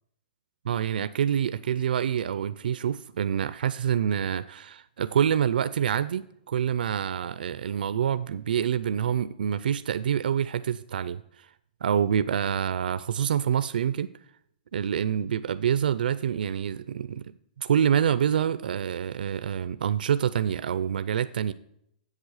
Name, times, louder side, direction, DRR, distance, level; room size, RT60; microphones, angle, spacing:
voice 1, 0.7-11.2 11.8-14.1 14.7-17.3 17.6-21.5, right 8 dB, 75° right, 14 dB, 0.4 m, -26 dB
7.9 x 7.3 x 6.4 m, 0.75 s
hypercardioid pair, 170°, 5 cm